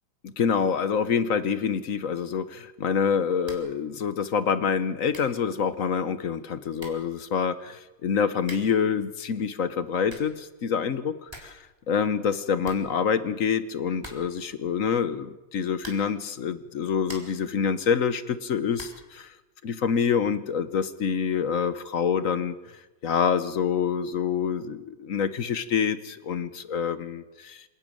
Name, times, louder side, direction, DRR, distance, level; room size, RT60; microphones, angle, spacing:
voice 1, 0.2-11.6 11.9-19.3 19.6-22.6 23.0-27.6, left 7 dB, 55° left, 12 dB, 1.0 m, -26 dB
sound 1, 3.4-3.8 4.1-4.2 4.8-4.9 5.1-5.4 6.4-6.5 6.8-7.1 8.4-8.9 9.8-10.4 10.8-10.9 11.1-11.6 11.9-12.0 12.3-12.4 12.6-13.4 14.0-14.5 15.8-16.3 16.7-17.5 18.7-19.1, right 1 dB, 10° right, 3.8 m, -45 dB
27.0 x 11.5 x 9.0 m, 1.1 s
omnidirectional pair, 2.4 m